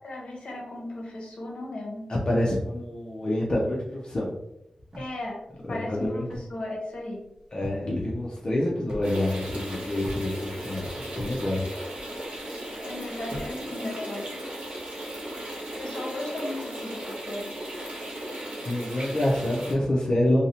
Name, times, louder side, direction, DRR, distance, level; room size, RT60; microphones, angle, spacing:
voice 1, 0.0-2.1 5.0-5.4 5.7-7.2 12.8-14.3 15.8-17.5, left 1 dB, 70° left, -1 dB, 0.7 m, -36 dB
voice 2, 2.1-4.3 5.7-6.2 7.5-11.7 18.3-20.5, left 1 dB, 40° left, -4 dB, 0.4 m, -27 dB
sound 1, 4.9-6.6 6.9-7.0 7.3-7.8 8.2-9.1 9.4-11.4 11.7-12.4 12.9-13.6, equal, 35° right, 0.6 m, -40 dB
sound 2, 9.0-19.7, right 1 dB, 90° right, 1.0 m, -36 dB
2.6 x 2.0 x 2.7 m, 0.86 s
wide cardioid pair, 120°, 2 cm